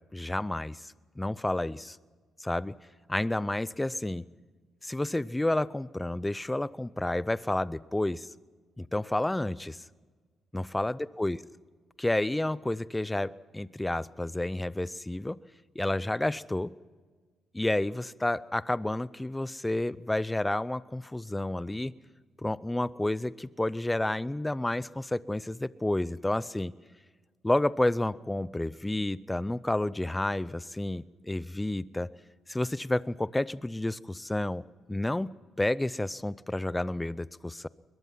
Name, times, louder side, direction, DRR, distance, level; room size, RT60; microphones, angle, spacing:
voice 1, 0.0-2.0 2.4-2.7 3.1-4.2 4.8-8.3 8.8-9.8 10.5-11.4 12.0-15.4 15.8-16.7 17.5-21.9 22.4-26.7 27.4-32.1 32.5-37.7, left 1 dB, 10° left, 18 dB, 0.5 m, -30 dB
22.0 x 21.5 x 5.7 m, 1.4 s
cardioid pair, 125°, 0 cm